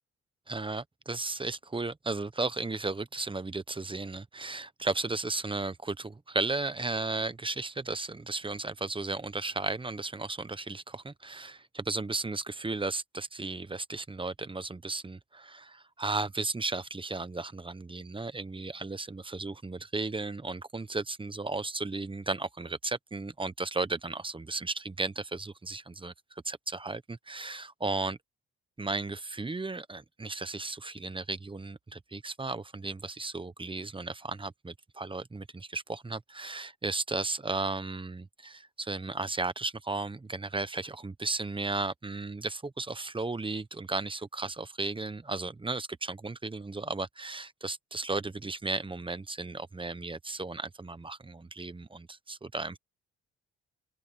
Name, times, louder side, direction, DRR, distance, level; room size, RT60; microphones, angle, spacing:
voice 1, 0.5-26.1 26.4-28.2 28.8-52.8, right 3 dB, 15° right, 1.1 m, -35 dB
open air
cardioid pair, 90°, 30 cm